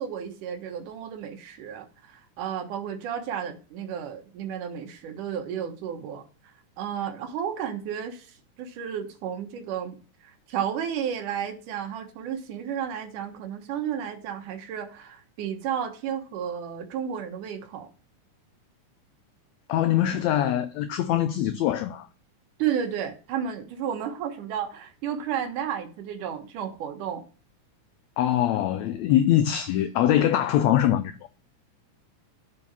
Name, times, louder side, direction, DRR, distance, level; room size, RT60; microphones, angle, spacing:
voice 1, 0.0-6.2 6.8-8.3 8.6-10.0 10.2-17.9 22.6-27.2, right 8 dB, 75° right, 2.6 m, -32 dB
voice 2, 19.7-22.1 28.2-31.1, left 11 dB, 85° left, 1.6 m, -23 dB
7.6 x 4.9 x 5.9 m
omnidirectional pair, 3.7 m